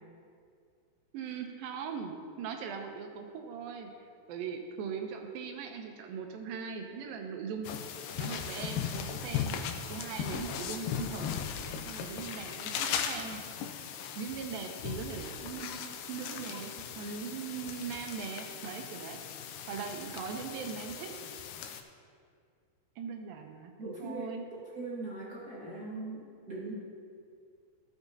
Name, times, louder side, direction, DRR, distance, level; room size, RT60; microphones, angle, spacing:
voice 1, 1.1-7.8 8.2-9.6 9.9-11.3 11.9-13.4 14.2-19.3 19.7-21.1 23.0-23.7 24.0-24.4, right 6 dB, 80° right, 4 dB, 2.2 m, -40 dB
sound 1, 7.6-21.8, left 8 dB, 85° left, 2.6 m, -38 dB
voice 2, 23.8-26.8, right 2 dB, 55° right, -7 dB, 1.0 m, -40 dB
15.5 x 7.1 x 2.7 m, 2.2 s
omnidirectional pair, 4.5 m